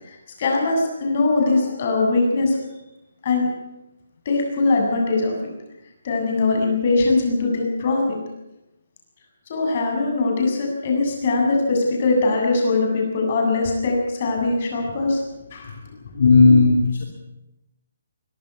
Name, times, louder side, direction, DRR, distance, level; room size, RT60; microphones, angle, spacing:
voice 1, 0.0-2.6 3.2-3.5 4.3-5.5 6.0-8.2 9.5-15.2 15.5-15.7, left 3 dB, 40° left, 1 dB, 7.7 m, -21 dB
voice 2, 16.1-17.1, left 3 dB, 65° left, 2 dB, 3.1 m, -14 dB
22.5 x 12.5 x 9.7 m, 0.92 s
hypercardioid pair, 165°, 0 cm